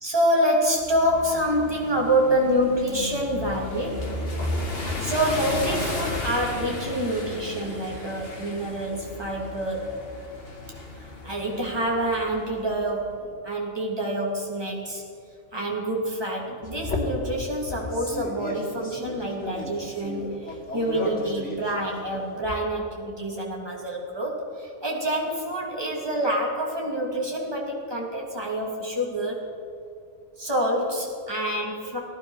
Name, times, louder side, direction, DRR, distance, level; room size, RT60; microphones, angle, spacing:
voice 1, 0.0-4.1 5.0-10.1 11.0-15.0 15.5-29.4 30.4-32.0, right 1 dB, 20° right, -2 dB, 2.9 m, -27 dB
sound 1, 0.8-12.9, left 2 dB, 50° left, 2.5 m, -34 dB
sound 2, 16.6-22.6, left 2 dB, 70° left, 2.7 m, -35 dB
17.5 x 12.5 x 6.5 m, 2.5 s
omnidirectional pair, 1.3 m